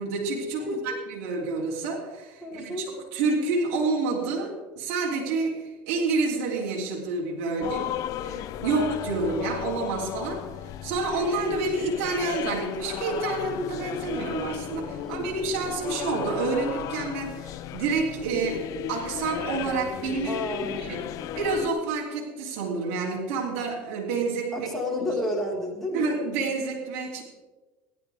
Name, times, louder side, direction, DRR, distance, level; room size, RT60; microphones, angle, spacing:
voice 1, 0.0-7.9 8.2-10.4 10.8-21.1 21.3-24.7 25.0-25.1 25.9-27.2, right 3 dB, 70° right, -3 dB, 3.1 m, -29 dB
voice 2, 0.6-1.0 2.4-2.9 7.6-7.9 15.0-15.3 20.2-20.9 24.5-26.1, left 1 dB, 5° left, -3 dB, 4.5 m, -31 dB
sound 1, 7.6-21.7, left 12 dB, 55° left, 0.7 m, -35 dB
17.5 x 11.0 x 3.5 m, 1.2 s
supercardioid pair, 100°, 7 cm